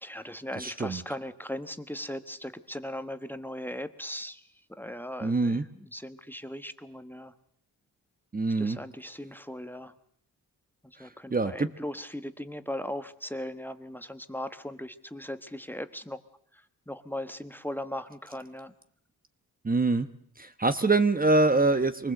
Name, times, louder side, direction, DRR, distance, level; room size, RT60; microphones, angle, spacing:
voice 1, 0.0-4.4 4.8-7.3 8.6-9.9 10.8-16.2 16.5-18.7, left 1 dB, 5° left, 10 dB, 1.2 m, -38 dB
voice 2, 0.6-1.0 5.2-5.6 8.3-8.8 11.0-11.7 19.6-20.1 20.4-22.1, right 3 dB, 25° right, 10 dB, 1.1 m, -25 dB
24.0 x 20.0 x 7.8 m, 0.66 s
cardioid pair, 85°, 36 cm